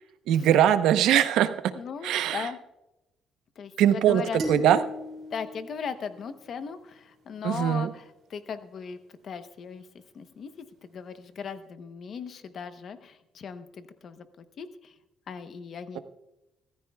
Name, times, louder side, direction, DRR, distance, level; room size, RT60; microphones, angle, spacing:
voice 1, 0.3-1.5 2.0-2.5 3.8-4.2 4.5-4.8 7.4-7.9 15.9-16.0, right 10 dB, 90° right, 10 dB, 0.8 m, -21 dB
voice 2, 1.7-2.6 3.6-4.4 5.3-9.0 9.2-9.9 10.1-14.9 15.3-16.0, left 6 dB, 40° left, 10 dB, 0.8 m, -38 dB
sound 1, 4.4-6.8, left 1 dB, 45° right, 3.6 m, -37 dB
25.0 x 14.0 x 2.3 m, 0.95 s
cardioid pair, 175°, 0 cm